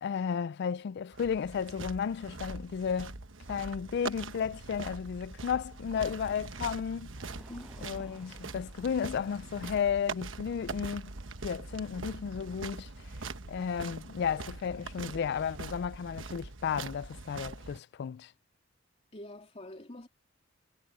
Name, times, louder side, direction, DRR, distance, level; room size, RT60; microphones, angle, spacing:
voice 1, 0.0-3.2 3.5-7.1 7.8-11.1 11.4-12.9 13.5-18.3, left 7 dB, 55° left, 0.3 m, -33 dB
sound 1, 1.1-17.8, right 3 dB, 70° right, 1.2 m, -43 dB
sound 2, 7.2-15.2, equal, 5° right, 6.7 m, -60 dB
voice 2, 7.3-7.8 19.1-20.1, left 1 dB, 35° left, 3.1 m, -46 dB
head